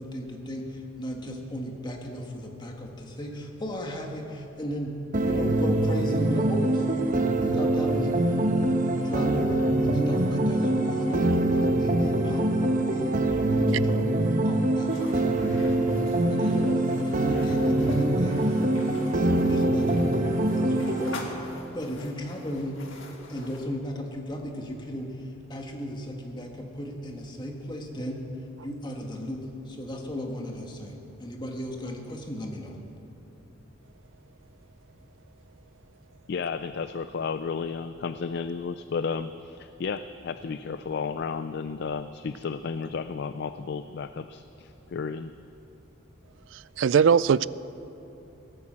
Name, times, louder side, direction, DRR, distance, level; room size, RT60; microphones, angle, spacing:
voice 1, 0.0-5.0 5.2-6.8 7.4-8.4 9.0-9.6 9.8-12.5 12.8-13.1 13.5-15.4 16.3-18.7 19.1-21.2 21.7-22.8 23.3-28.2 28.6-32.7, equal, 20° left, 2 dB, 1.5 m, -36 dB
sound 1, 5.1-21.1, right 1 dB, 40° right, 1.0 m, -24 dB
sound 2, 14.8-23.7, left 2 dB, 70° left, 1.7 m, -44 dB
voice 2, 36.3-45.3, left 5 dB, 55° left, 12 dB, 0.3 m, -33 dB
voice 3, 46.5-47.5, right 7 dB, 65° right, 19 dB, 0.3 m, -20 dB
17.0 x 10.0 x 7.5 m, 3.0 s
head